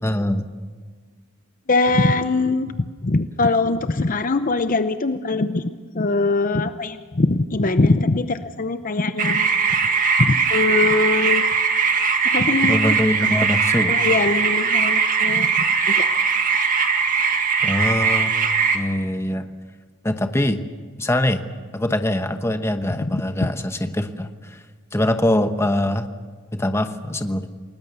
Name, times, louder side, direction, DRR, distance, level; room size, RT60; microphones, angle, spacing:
voice 1, 0.0-0.5 12.7-14.0 17.6-18.3 18.7-19.5 20.0-20.6 21.0-21.4 21.7-24.6 24.9-26.1 26.5-27.5, left 1 dB, 10° left, 8 dB, 1.1 m, -23 dB
voice 2, 1.7-9.5 10.2-11.5 12.3-12.9 13.9-15.5 15.8-16.1 23.0-23.5, left 3 dB, 40° left, 10 dB, 0.7 m, -22 dB
sound 1, 9.2-18.8, right 5 dB, 40° right, 1.9 m, -20 dB
28.5 x 19.5 x 6.8 m, 1.5 s
head